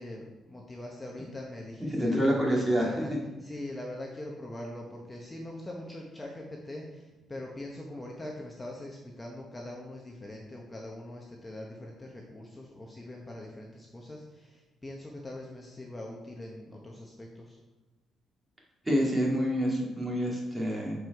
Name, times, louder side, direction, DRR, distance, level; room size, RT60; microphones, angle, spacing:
voice 1, 0.0-3.1 3.4-17.6, left 1 dB, 20° left, -1 dB, 1.1 m, -42 dB
voice 2, 1.9-2.9 18.9-20.9, equal, 15° right, -3 dB, 2.4 m, -27 dB
7.1 x 4.8 x 4.7 m, 1.2 s
cardioid pair, 90°, 0 cm